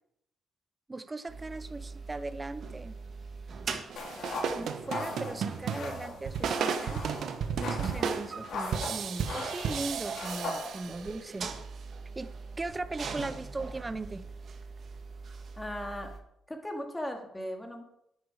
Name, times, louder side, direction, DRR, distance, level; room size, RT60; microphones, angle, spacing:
voice 1, 0.9-3.0 4.3-7.0 7.6-11.5 12.2-12.3 12.6-14.2, right 2 dB, 20° right, 13 dB, 0.9 m, -38 dB
sound 1, 1.3-16.2, right 5 dB, 50° right, 1.8 m, -43 dB
sound 2, 3.9-11.3, right 7 dB, 70° right, 1.3 m, -34 dB
sound 3, 4.0-11.1, left 3 dB, 65° left, 4.2 m, -40 dB
voice 2, 4.1-4.9 15.6-16.1 16.5-17.8, left 1 dB, 10° left, 3 dB, 2.6 m, -38 dB
10.5 x 9.3 x 5.0 m, 0.76 s
cardioid pair, 90°, 0 cm